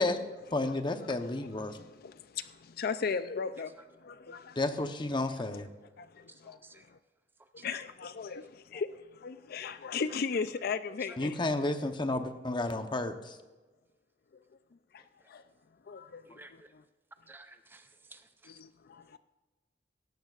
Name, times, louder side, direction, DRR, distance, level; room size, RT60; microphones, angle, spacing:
voice 1, 0.5-1.8 4.6-5.7 11.2-13.4, left 2 dB, 25° left, 0.9 m, -31 dB
voice 2, 1.7-4.6 6.0-7.0 7.5-11.4 14.3-14.4 14.9-15.4 15.9-16.8 18.5-19.2, left 5 dB, 55° left, 0.4 m, -37 dB
voice 3, 6.3-6.9 7.6-7.7 11.1-11.2 15.0-15.1 16.3-16.7 17.3-18.5, right 2 dB, 10° right, 0.5 m, -55 dB
17.5 x 14.5 x 2.5 m
head